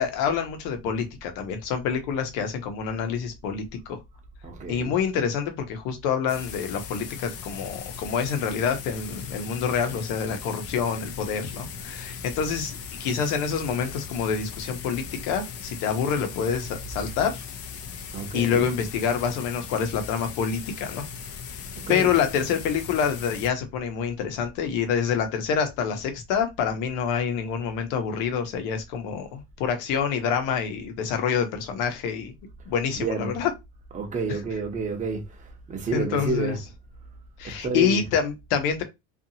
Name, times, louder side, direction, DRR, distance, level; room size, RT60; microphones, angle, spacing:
voice 1, 0.0-4.0 4.7-17.4 18.3-21.0 21.9-32.3 32.7-33.5 35.9-36.6 37.4-38.8, left 7 dB, 85° left, 0.8 m, -27 dB
voice 2, 4.4-4.9 18.1-18.7 21.8-22.1 32.9-33.3 33.9-35.3 35.7-36.6 37.4-38.1, right 3 dB, 25° right, 0.8 m, -29 dB
sound 1, 6.3-23.5, left 7 dB, 50° left, 0.5 m, -39 dB
2.6 x 2.5 x 2.7 m
cardioid pair, 140°, 31 cm